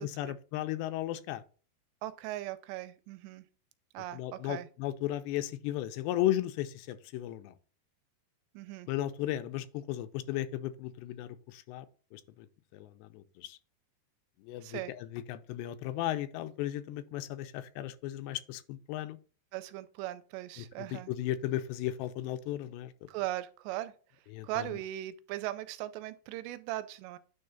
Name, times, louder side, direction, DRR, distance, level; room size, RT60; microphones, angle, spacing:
voice 1, 0.0-1.4 4.1-7.5 8.9-11.9 12.1-12.5 12.7-13.6 14.4-19.2 20.6-23.1 24.3-24.7, left 13 dB, 85° left, 2.7 m, -35 dB
voice 2, 2.0-3.4 3.9-4.7 8.5-8.9 14.6-14.9 19.5-21.1 23.1-23.9 24.4-27.2, right 15 dB, 85° right, 2.7 m, -38 dB
9.3 x 3.3 x 5.5 m
omnidirectional pair, 4.8 m